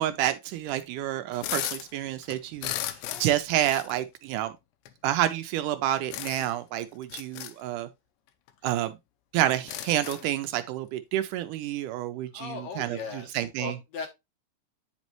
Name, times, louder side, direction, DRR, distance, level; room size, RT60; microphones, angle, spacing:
voice 1, 0.0-2.7 3.2-4.5 5.0-7.9 8.6-9.0 9.3-13.8, right 12 dB, 80° right, 2.0 m, -29 dB
sound 1, 1.3-1.9 2.2-3.4 3.6-3.9 4.9-5.0 6.1-6.6 7.0-7.5 8.5-8.6 8.9-9.0 9.4-10.3, left 13 dB, 90° left, 2.4 m, -35 dB
voice 2, 12.3-14.1, left 5 dB, 65° left, 1.9 m, -38 dB
8.9 x 5.3 x 3.0 m
omnidirectional pair, 3.9 m